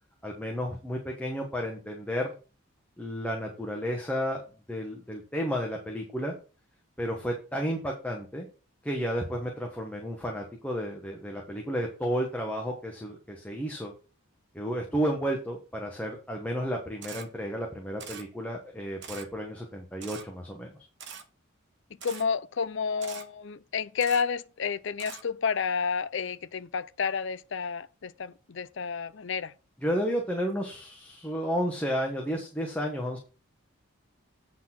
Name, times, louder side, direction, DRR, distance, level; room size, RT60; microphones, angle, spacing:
voice 1, 0.2-2.3 3.0-4.4 4.7-6.3 7.0-8.5 8.8-13.9 14.5-20.7 29.8-33.2, equal, 5° left, 1.2 m, -32 dB
Camera, 17.0-17.2 18.0-18.2 19.0-19.2 20.0-20.2 21.0-21.2 22.0-22.2 23.0-23.2 24.0-24.2 25.0-25.2, right 7 dB, 55° right, 1.1 m, -42 dB
voice 2, 22.0-29.5, left 6 dB, 60° left, 0.5 m, -30 dB
8.4 x 4.1 x 5.9 m
head